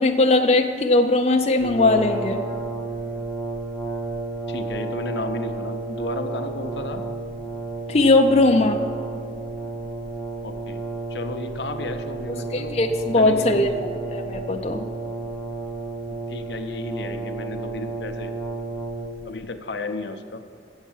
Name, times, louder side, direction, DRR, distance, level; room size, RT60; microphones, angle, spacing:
voice 1, 0.0-2.4 7.9-8.8 12.5-13.7 14.1-14.8, left 2 dB, 35° left, 3 dB, 0.5 m, -19 dB
Brass instrument, 1.6-19.4, right 3 dB, 10° left, 0.8 m, -32 dB
voice 2, 4.5-7.0 10.4-10.8 11.1-12.8 13.2-13.8 16.1-18.3 19.2-20.4, left 2 dB, 80° left, 7 dB, 0.7 m, -33 dB
8.0 x 7.2 x 7.2 m, 2.2 s
head